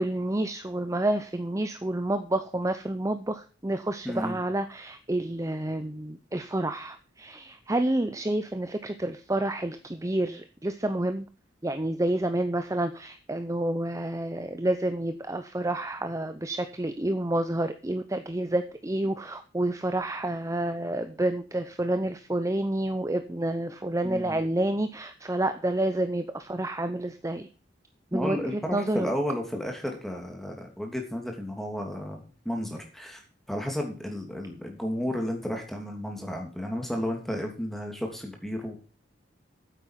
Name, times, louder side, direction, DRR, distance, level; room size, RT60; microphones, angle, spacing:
voice 1, 0.0-11.3 11.6-27.5 28.1-29.1, right 1 dB, 15° right, 9 dB, 0.7 m, -29 dB
voice 2, 4.0-4.4 24.0-24.4 28.1-33.2 33.5-38.7, equal, ahead, 2 dB, 2.7 m, -32 dB
9.3 x 8.2 x 5.7 m, 0.36 s
head